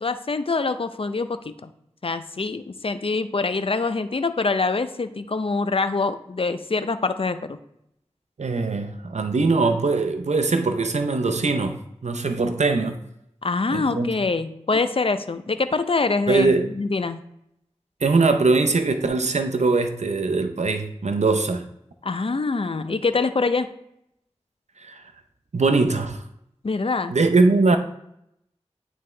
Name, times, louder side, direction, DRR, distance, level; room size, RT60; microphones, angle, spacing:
voice 1, 0.0-1.7 2.0-7.6 13.4-17.2 22.0-23.7 26.6-27.2, left 3 dB, 55° left, 0.5 m, -25 dB
voice 2, 8.4-13.0 13.7-14.1 16.3-16.7 18.0-21.6 24.8-25.0 25.5-26.2 27.1-27.8, right 3 dB, 85° right, 0.6 m, -21 dB
8.9 x 3.5 x 3.2 m
wide cardioid pair, 40°, 11 cm